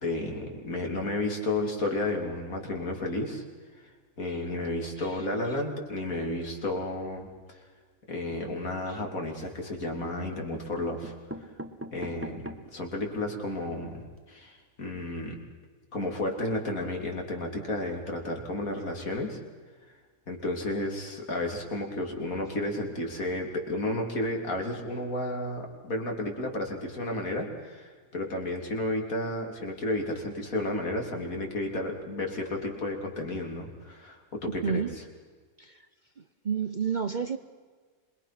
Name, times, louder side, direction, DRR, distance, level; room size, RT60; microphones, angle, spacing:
voice 1, 0.0-3.4 3.8-3.9 4.2-7.6 8.1-11.1 11.4-11.5 11.9-12.5 12.7-15.4 15.9-19.4 20.3-34.8, left 1 dB, 75° left, 2 dB, 3.4 m, -32 dB
sound 1, 9.3-9.9 10.6-10.7 11.0-12.8 13.3-13.4 13.6-13.7 14.0-14.2, right 1 dB, 10° right, 1.1 m, -42 dB
voice 2, 34.5-34.9 35.6-35.8 36.2-37.4, right 6 dB, 40° right, 9 dB, 0.7 m, -30 dB
26.5 x 21.5 x 6.0 m, 1.5 s
omnidirectional pair, 1.5 m